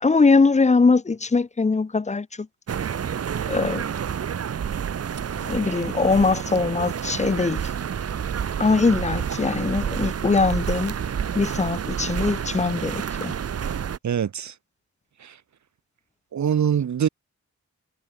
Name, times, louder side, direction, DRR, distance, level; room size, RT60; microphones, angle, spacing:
voice 1, 0.0-2.5 3.5-3.8 5.5-7.7 8.6-10.9 11.3-13.3, left 4 dB, 25° left, 0.7 m, -21 dB
sound 1, 2.7-14.0, right 8 dB, 55° right, 0.8 m, -29 dB
voice 2, 14.0-14.5 15.2-15.3 16.3-17.1, right 8 dB, 75° right, 1.2 m, -23 dB
wide cardioid pair, 170°, 29 cm